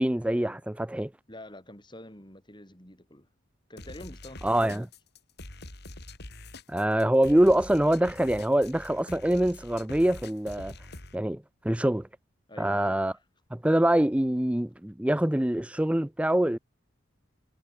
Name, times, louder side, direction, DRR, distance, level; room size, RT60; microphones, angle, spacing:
voice 1, 0.0-1.1 4.4-4.9 6.7-10.7 11.1-12.1 12.6-13.1 13.5-16.6, right 1 dB, 5° right, 0.4 m, -24 dB
voice 2, 1.3-3.3 3.7-4.9 12.5-13.2, left 1 dB, 20° left, 6.2 m, -47 dB
sound 1, 3.8-11.2, left 2 dB, 55° left, 5.5 m, -44 dB
head